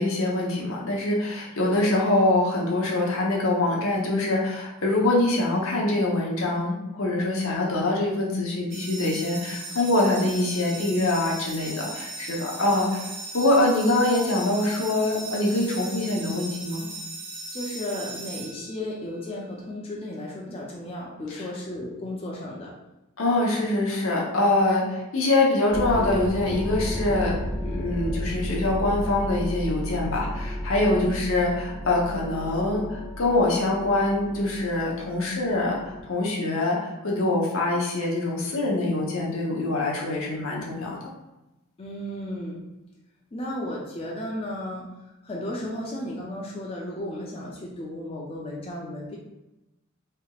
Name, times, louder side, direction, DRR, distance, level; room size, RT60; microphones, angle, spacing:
voice 1, 0.0-16.8 21.3-21.4 23.2-41.0, left 2 dB, 70° left, -2 dB, 0.8 m, -24 dB
sound 1, 8.7-19.1, right 2 dB, 45° right, 0.6 m, -38 dB
voice 2, 17.5-22.7 31.0-31.1 41.8-42.6 43.3-44.9 45.2-49.2, left 1 dB, 25° left, -4 dB, 0.4 m, -34 dB
sound 2, 25.7-36.0, equal, 10° left, 1.1 m, -33 dB
3.3 x 2.8 x 2.3 m, 0.98 s
head